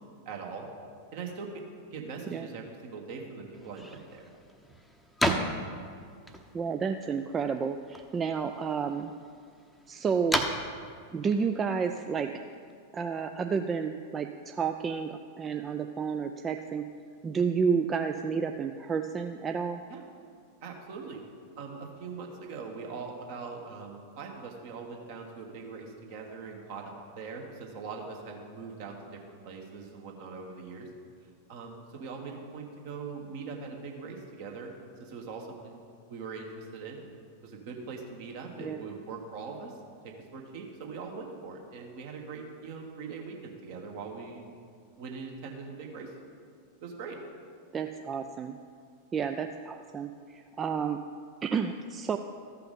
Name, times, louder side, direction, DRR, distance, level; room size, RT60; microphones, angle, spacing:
voice 1, 0.2-0.7 1.1-1.6 1.9-4.2 19.9-20.0 20.6-21.2 21.6-30.9 31.5-34.7 35.0-37.0 37.4-39.8 40.0-44.4 45.0-46.1 46.8-47.2, right 4 dB, 50° right, 1 dB, 1.6 m, -41 dB
sound 1, 3.5-12.7, equal, ahead, 0.8 m, -36 dB
voice 2, 6.5-9.1 9.9-10.4 11.1-12.3 12.9-16.8 17.2-19.8 38.6-38.8 47.7-48.6 49.1-51.0 51.4-52.2, right 6 dB, 20° right, 6 dB, 0.4 m, -31 dB
14.0 x 5.7 x 5.2 m, 2.1 s
figure-of-eight pair, 90°, 0 cm